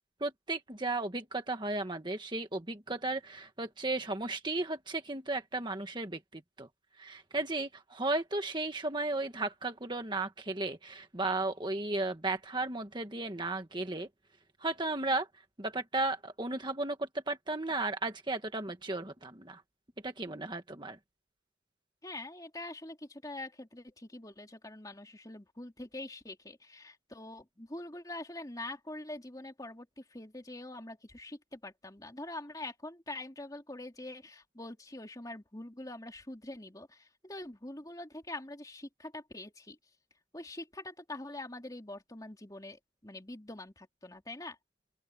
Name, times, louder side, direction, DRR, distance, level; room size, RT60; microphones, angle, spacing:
voice 1, 0.2-6.7 7.0-14.1 14.6-15.3 15.6-19.6 20.0-21.0, right 2 dB, 25° right, 1.5 m, -35 dB
voice 2, 22.0-39.8 40.3-44.6, left 2 dB, 20° left, 3.0 m, -44 dB
open air
head